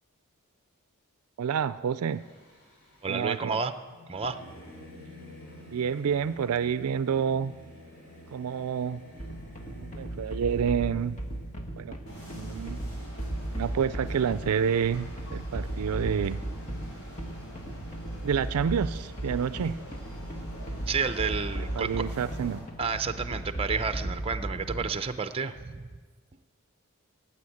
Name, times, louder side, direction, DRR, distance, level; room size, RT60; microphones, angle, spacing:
voice 1, 1.4-2.2 3.1-3.6 5.7-7.5 8.3-9.0 9.8-11.2 11.8-12.0 12.3-12.8 13.5-16.4 18.2-19.8 21.8-22.6, right 7 dB, 75° right, 15 dB, 0.4 m, -28 dB
Singing / Musical instrument, 2.0-11.6, left 1 dB, 50° left, 4.6 m, -50 dB
voice 2, 3.0-3.7 4.1-4.4 20.9-21.9 22.8-25.9, right 5 dB, 25° right, 10 dB, 0.6 m, -30 dB
sound 1, 9.2-25.1, right 1 dB, 35° left, 1.6 m, -36 dB
sound 2, 12.1-22.6, equal, 70° left, 5.5 m, -45 dB
16.0 x 8.2 x 8.4 m, 1.4 s
head